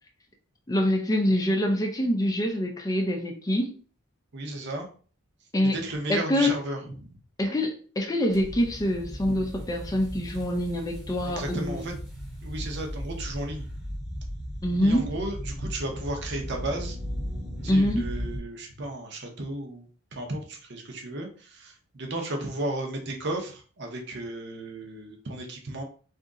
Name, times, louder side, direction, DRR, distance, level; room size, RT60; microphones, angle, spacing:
voice 1, 0.7-3.7 5.5-5.8 6.1-6.5 7.4-11.8 14.6-15.0 17.7-18.0, left 1 dB, 15° left, 1 dB, 0.4 m, -25 dB
voice 2, 4.3-4.9 5.6-7.2 11.3-11.9 12.4-13.7 14.8-17.0 17.6-25.8, right 1 dB, 50° right, 3 dB, 0.8 m, -34 dB
sound 1, 8.3-18.4, equal, ahead, 0.9 m, -36 dB
2.8 x 2.5 x 3.6 m, 0.40 s
head